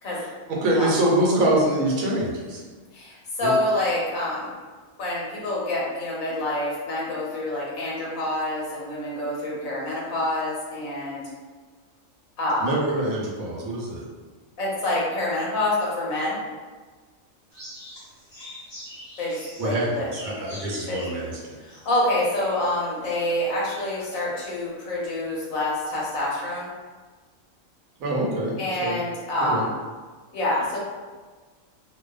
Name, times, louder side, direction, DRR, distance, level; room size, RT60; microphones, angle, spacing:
voice 1, 0.2-2.6 3.4-3.5 12.6-14.1 19.6-21.6 28.0-29.0 29.4-29.6, right 1 dB, 85° right, -3 dB, 1.0 m, -25 dB
voice 2, 2.9-4.5 5.0-11.2 12.4-12.7 14.6-16.4 19.2-20.1 20.9-21.1 21.6-26.7 28.6-29.7 30.3-30.8, left 1 dB, 75° left, -5 dB, 1.2 m, -27 dB
sound 1, 17.5-22.7 23.2-23.3 23.9-24.3, left 1 dB, 25° left, 1.0 m, -44 dB
2.6 x 2.1 x 2.3 m, 1.4 s
omnidirectional pair, 1.4 m